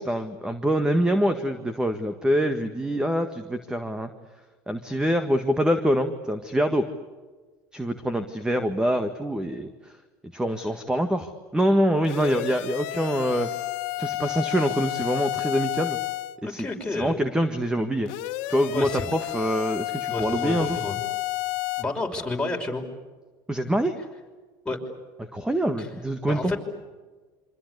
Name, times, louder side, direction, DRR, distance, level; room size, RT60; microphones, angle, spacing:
voice 1, 0.0-4.1 4.7-6.9 7.7-9.9 10.3-13.5 14.0-16.0 16.5-18.1 18.5-20.8 23.5-24.0 25.2-26.5, equal, 5° right, 9 dB, 1.8 m, -25 dB
sound 1, 12.0-16.4 18.1-21.8, left 18 dB, 70° left, 1.7 m, -31 dB
voice 2, 16.4-17.2 18.7-19.0 20.1-21.0 21.8-22.8 24.7-24.8 25.8-25.9 26.3-26.6, left 2 dB, 10° left, 1 dB, 5.7 m, -30 dB
27.5 x 25.5 x 8.2 m, 1.3 s
supercardioid pair, 100°, 11 cm